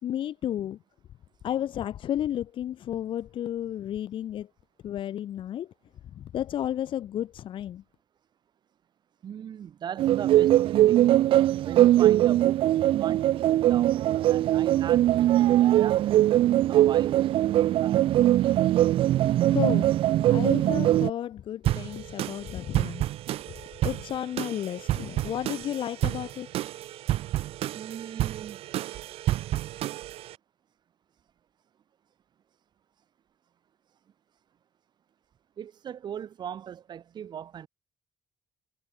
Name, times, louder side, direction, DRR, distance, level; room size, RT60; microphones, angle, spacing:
voice 1, 0.0-0.8 1.4-4.5 4.8-5.7 6.1-7.8 19.5-19.9 20.3-23.0 23.8-26.5, left 11 dB, 60° left, 2.1 m, -32 dB
voice 2, 9.2-11.1 11.6-17.2 17.8-18.0 27.7-28.6 35.6-37.7, right 9 dB, 50° right, 3.9 m, -39 dB
sound 1, 10.0-21.1, right 13 dB, 65° right, 0.5 m, -21 dB
sound 2, 21.6-30.3, right 14 dB, 80° right, 2.4 m, -31 dB
cardioid pair, 145°, 10 cm